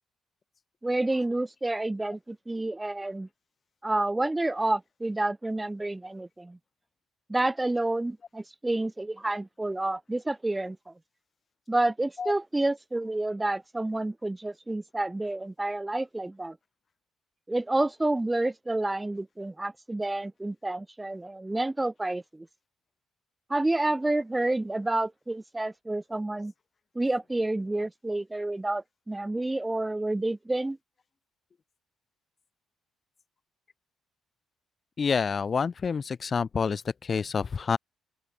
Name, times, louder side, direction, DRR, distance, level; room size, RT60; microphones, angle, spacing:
voice 1, 0.8-3.3 3.8-6.6 7.3-10.9 11.7-16.6 17.5-22.5 23.5-26.5 26.9-30.8, right 2 dB, 10° right, 4.5 m, -29 dB
voice 2, 35.0-37.8, left 5 dB, 35° left, 1.8 m, -28 dB
open air
cardioid pair, 140°, 0 cm